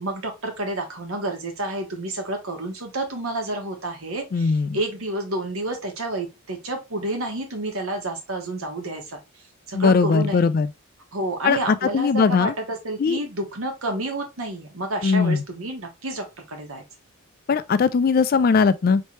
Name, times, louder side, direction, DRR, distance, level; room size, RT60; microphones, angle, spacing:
voice 1, 0.0-9.2 9.7-10.5 11.1-16.8, right 1 dB, 80° right, 1.3 m, -29 dB
voice 2, 4.3-4.8 9.7-10.7 11.4-12.5 13.0-13.2 15.0-15.4 17.5-19.0, left 5 dB, 45° left, 0.3 m, -19 dB
4.3 x 3.2 x 3.0 m
head